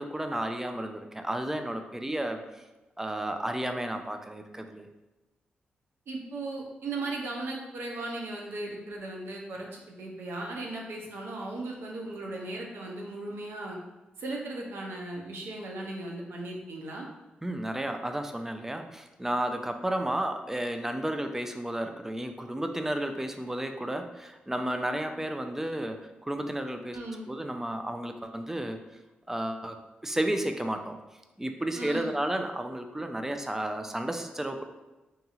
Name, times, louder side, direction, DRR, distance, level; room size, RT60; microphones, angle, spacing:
voice 1, 0.0-2.4 3.0-4.9 17.4-27.0 27.3-28.8 29.3-29.8 30.0-31.0 31.4-34.6, right 1 dB, 10° right, 6 dB, 0.3 m, -32 dB
voice 2, 6.1-13.8 14.2-17.1 26.9-27.2 31.8-32.1, right 2 dB, 70° right, -1 dB, 0.5 m, -37 dB
2.7 x 2.7 x 2.4 m, 1.1 s
supercardioid pair, 40°, 4 cm